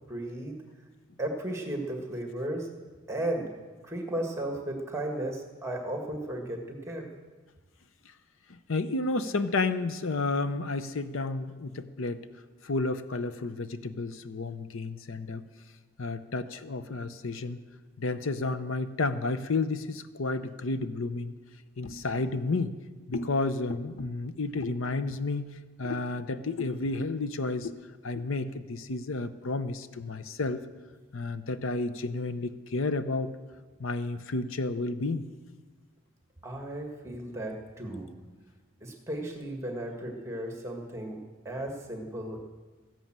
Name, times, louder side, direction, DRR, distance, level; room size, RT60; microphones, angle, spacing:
voice 1, 0.1-0.6 1.2-2.7 3.1-3.5 3.8-7.1 36.4-38.1 38.8-42.4, right 1 dB, 15° right, 2 dB, 1.6 m, -35 dB
voice 2, 8.5-12.3 12.6-15.4 16.0-17.6 18.0-21.3 21.8-22.8 23.1-25.5 25.8-27.8 28.0-30.6 31.1-33.3 33.8-35.3, left 3 dB, 65° left, 12 dB, 0.7 m, -31 dB
14.5 x 11.0 x 7.4 m, 1.3 s
head